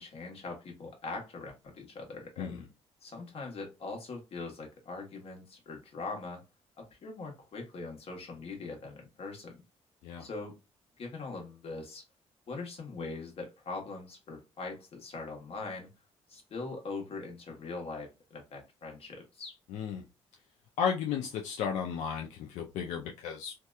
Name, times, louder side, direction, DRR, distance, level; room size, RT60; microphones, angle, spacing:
voice 1, 0.0-2.7 3.0-6.4 6.8-9.6 10.2-10.5 11.0-12.0 12.5-15.9 16.3-19.6, left 3 dB, 55° left, 1.1 m, -41 dB
voice 2, 19.7-20.0 20.8-23.5, left 7 dB, 85° left, 0.4 m, -34 dB
2.7 x 2.2 x 2.2 m
cardioid pair, 90°, 12 cm